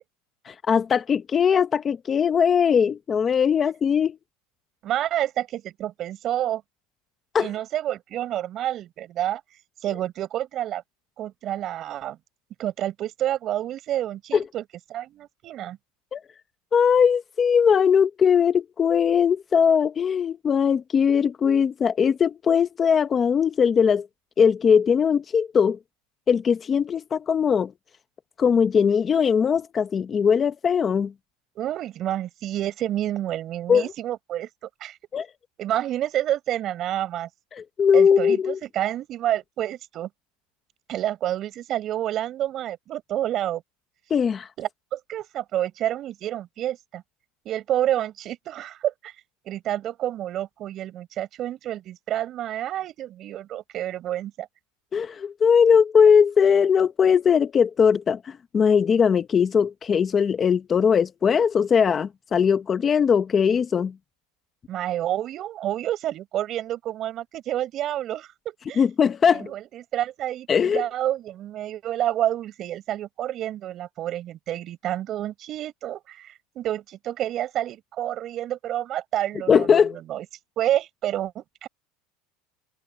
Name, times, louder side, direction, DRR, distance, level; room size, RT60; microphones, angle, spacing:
voice 1, 0.7-4.2 7.3-7.5 14.3-14.4 16.1-16.2 16.7-24.1 24.4-25.8 26.3-27.7 28.4-31.1 33.7-33.9 35.1-35.3 37.5-38.6 44.1-44.5 54.9-63.9 68.8-69.5 70.5-70.8 79.5-80.0, left 7 dB, 25° left, 0.8 m, -20 dB
voice 2, 4.8-6.6 7.4-9.4 9.8-10.8 11.2-12.2 12.6-14.6 14.9-15.8 31.6-34.5 34.8-35.0 35.6-37.3 37.9-40.1 40.9-43.6 44.6-47.0 47.5-49.1 49.5-54.5 64.7-68.8 69.3-79.8 80.1-80.3 80.6-81.7, right 12 dB, 40° right, 5.3 m, -29 dB
supercardioid pair, 145°, 0 cm